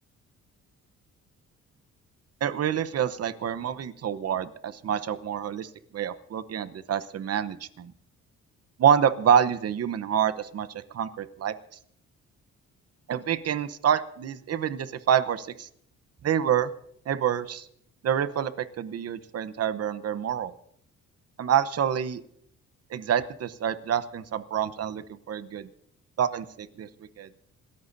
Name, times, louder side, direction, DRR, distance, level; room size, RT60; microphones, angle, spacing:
voice 1, 2.4-7.9 8.8-11.5 13.1-15.7 16.2-16.7 17.1-17.7 18.0-20.5 21.4-22.2 22.9-25.7 26.2-26.9 27.2-27.3, right 9 dB, 55° right, 14 dB, 0.9 m, -27 dB
27.0 x 14.0 x 2.7 m, 0.70 s
cardioid pair, 90°, 30 cm